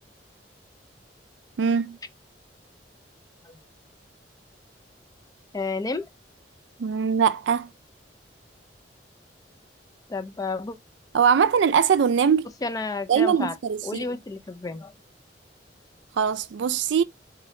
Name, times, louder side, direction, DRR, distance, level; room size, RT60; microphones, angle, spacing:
voice 1, 1.6-2.0 6.8-7.7 11.1-12.5 13.1-14.1 16.2-17.0, right 7 dB, 70° right, 0.4 m, -21 dB
voice 2, 5.5-6.1 10.1-10.8 12.6-13.5 13.8-14.9, left 3 dB, 20° left, 0.4 m, -31 dB
3.8 x 2.8 x 3.1 m
head